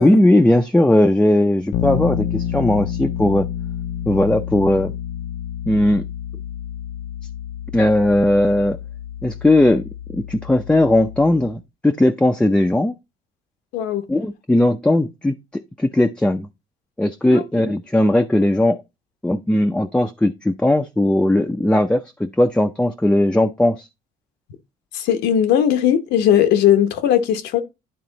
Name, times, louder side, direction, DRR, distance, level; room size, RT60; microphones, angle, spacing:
voice 1, 0.0-3.5 4.1-4.9 5.7-6.1 7.7-8.8 9.2-13.0 14.1-15.4 15.8-16.5 17.0-18.8 19.2-23.9, left 1 dB, 5° left, 0.5 m, -18 dB
Bass guitar, 1.7-11.5, left 9 dB, 70° left, 0.6 m, -29 dB
voice 2, 24.9-27.6, left 10 dB, 85° left, 1.0 m, -18 dB
10.5 x 3.6 x 3.9 m
cardioid pair, 110°, 17 cm